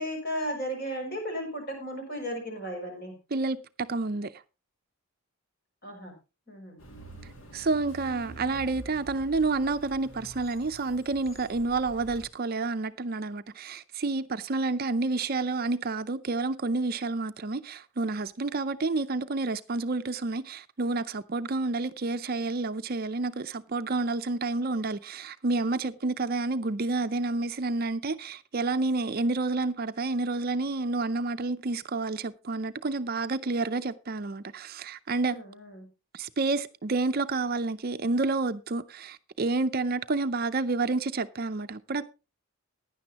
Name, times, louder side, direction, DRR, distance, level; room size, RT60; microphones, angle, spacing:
voice 1, 0.0-3.1 5.8-6.1 6.5-6.8 35.2-35.9, equal, 45° left, 6.2 m, -35 dB
voice 2, 3.3-4.3 7.5-35.4 36.1-42.1, right 3 dB, 40° right, 0.5 m, -29 dB
sound 1, 6.8-12.3, right 1 dB, 60° left, 2.3 m, -47 dB
16.0 x 10.5 x 2.9 m
head